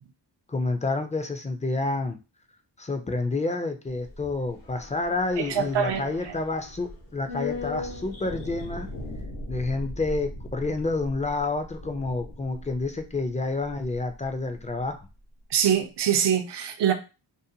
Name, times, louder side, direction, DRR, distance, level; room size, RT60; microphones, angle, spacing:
voice 1, 0.5-2.2 2.8-8.9 9.5-15.0, left 3 dB, 15° left, 0.4 m, -29 dB
sound 1, 3.9-14.3 14.6-14.7, left 2 dB, 85° left, 1.0 m, -38 dB
voice 2, 5.4-6.4 15.5-16.9, right 8 dB, 65° right, 0.6 m, -24 dB
2.6 x 2.1 x 2.7 m
cardioid pair, 70°, 44 cm